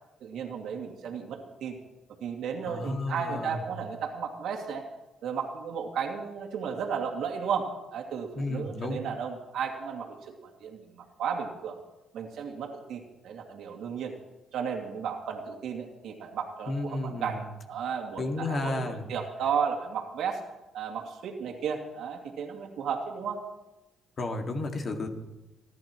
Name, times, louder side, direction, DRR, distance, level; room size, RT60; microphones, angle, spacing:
voice 1, 0.2-1.7 2.2-4.8 5.2-11.8 12.1-14.1 14.5-20.4 20.7-23.5, right 6 dB, 80° right, 2 dB, 2.3 m, -34 dB
voice 2, 2.7-3.6 8.3-9.0 16.7-17.4 18.2-19.1 24.2-25.1, left 2 dB, 45° left, 3 dB, 2.2 m, -32 dB
29.0 x 11.5 x 3.1 m, 1.0 s
cardioid pair, 90°, 0 cm